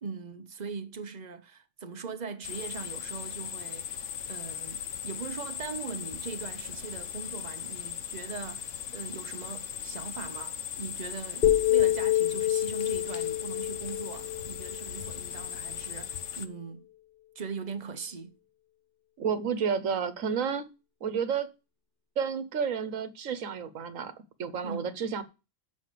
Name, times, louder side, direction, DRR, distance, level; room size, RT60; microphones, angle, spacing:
voice 1, 0.0-16.9 17.3-18.4 24.6-25.0, right 5 dB, 35° right, 1.0 m, -40 dB
sound 1, 2.4-16.5, left 9 dB, 70° left, 1.1 m, -38 dB
sound 2, 11.4-15.5, left 13 dB, 40° left, 1.2 m, -27 dB
voice 2, 19.2-20.7 21.0-21.5 22.2-24.1 24.4-25.2, right 6 dB, 80° right, 1.4 m, -31 dB
6.8 x 6.3 x 7.5 m
omnidirectional pair, 1.3 m